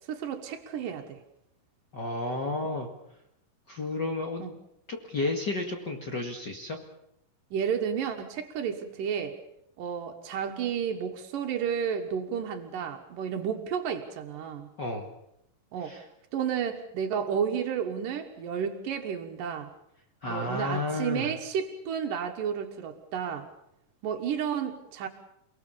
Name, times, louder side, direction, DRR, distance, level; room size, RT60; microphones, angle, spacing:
voice 1, 0.1-1.2 4.4-4.5 7.5-9.4 9.8-14.7 15.7-16.0 16.3-19.7 20.3-23.5 24.0-25.1, right 7 dB, 85° right, 4 dB, 3.1 m, -32 dB
voice 2, 1.9-2.9 3.7-4.4 4.9-6.8 14.8-15.1 15.8-16.0 20.2-21.3, left 2 dB, 40° left, 3 dB, 2.1 m, -32 dB
29.0 x 19.0 x 7.1 m, 0.80 s
omnidirectional pair, 3.7 m